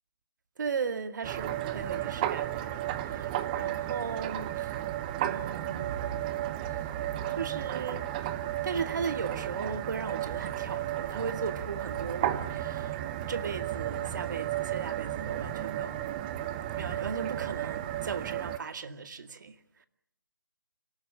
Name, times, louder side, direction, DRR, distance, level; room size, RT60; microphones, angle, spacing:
voice 1, 0.6-4.7 5.2-6.4 7.3-8.1 8.6-13.0 13.3-16.0 16.5-19.6, right 5 dB, 55° right, 2.2 m, -37 dB
sound 1, 1.2-18.6, right 12 dB, 20° right, 1.0 m, -33 dB
26.5 x 18.5 x 8.7 m
figure-of-eight pair, 155°, 12 cm